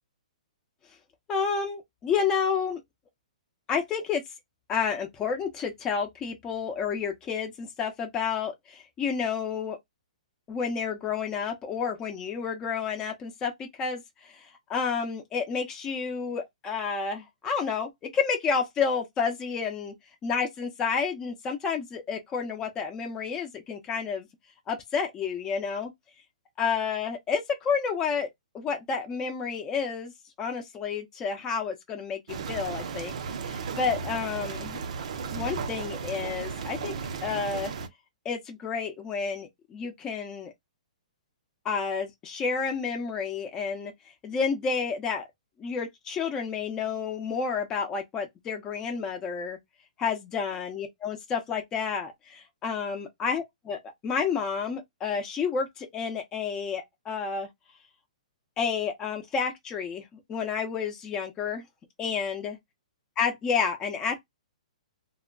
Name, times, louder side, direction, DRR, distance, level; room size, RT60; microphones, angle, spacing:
voice 1, 1.3-2.8 3.7-4.2 4.7-9.8 10.5-19.9 20.2-24.3 24.7-25.9 26.6-28.3 28.5-30.1 30.4-32.2 32.5-33.1 33.4-34.8 35.3-36.9 37.2-37.7 38.2-40.5 41.6-43.9 44.2-45.3 45.6-49.6 50.0-57.5 58.6-61.6 62.0-62.6 63.2-64.2, left 6 dB, 15° left, 0.6 m, -30 dB
sound 1, 32.3-37.9, right 5 dB, 60° right, 0.6 m, -35 dB
2.1 x 2.1 x 3.7 m
hypercardioid pair, 155°, 4 cm